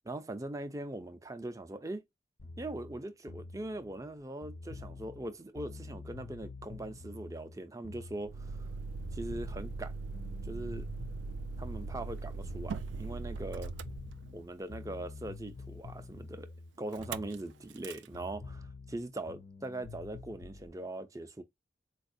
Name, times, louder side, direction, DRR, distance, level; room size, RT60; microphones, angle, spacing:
voice 1, 0.0-2.0 2.6-8.7 9.1-9.9 10.4-10.9 11.6-13.7 14.3-21.4, right 1 dB, 20° right, 0.4 m, -41 dB
sound 1, 2.4-8.7 9.0-13.3 13.6-17.8 18.1-20.7, left 3 dB, 40° left, 0.4 m, -48 dB
Motor vehicle (road), 8.2-14.7 16.9-17.4 17.7-18.1, right 4 dB, 80° right, 0.3 m, -40 dB
4.2 x 2.3 x 2.5 m
head